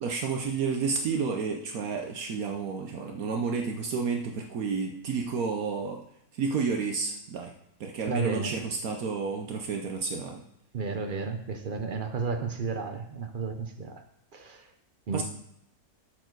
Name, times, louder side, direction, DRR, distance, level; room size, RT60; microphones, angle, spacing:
voice 1, 0.0-6.0 6.3-7.5 7.8-10.4 15.1-15.2, right 5 dB, 70° right, 4 dB, 1.2 m, -31 dB
voice 2, 8.1-8.6 10.7-14.0 14.3-14.7 15.1-15.2, right 4 dB, 50° right, 6 dB, 0.6 m, -32 dB
13.0 x 4.5 x 4.6 m, 0.74 s
omnidirectional pair, 1.6 m